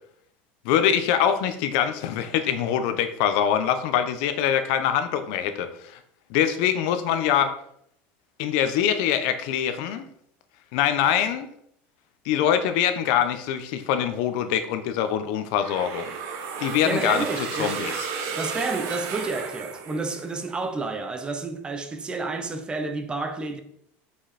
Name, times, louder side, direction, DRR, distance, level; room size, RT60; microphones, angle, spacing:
voice 1, 0.6-6.0 6.3-7.5 8.4-10.1 10.7-11.5 12.2-16.1 16.6-17.3 17.6-18.1, left 9 dB, 70° left, 1.0 m, -24 dB
sound 1, 15.6-20.5, right 6 dB, 55° right, 1.5 m, -33 dB
voice 2, 16.8-18.0 18.3-23.6, right 3 dB, 15° right, 0.8 m, -30 dB
7.9 x 5.5 x 4.3 m
supercardioid pair, 145°, 6 cm